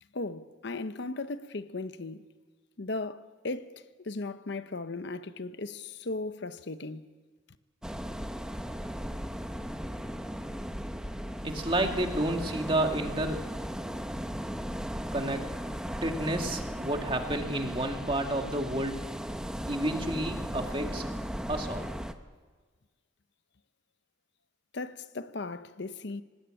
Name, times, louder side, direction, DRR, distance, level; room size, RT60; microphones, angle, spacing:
voice 1, 0.1-2.2 2.8-7.1 24.7-26.2, left 3 dB, 60° left, 0.8 m, -37 dB
sound 1, 7.8-22.1, equal, 5° right, 0.8 m, -36 dB
voice 2, 11.4-13.5 15.1-15.5 16.0-19.1 19.7-21.0 21.5-21.9, right 1 dB, 25° right, 2.0 m, -30 dB
24.5 x 19.0 x 8.9 m
head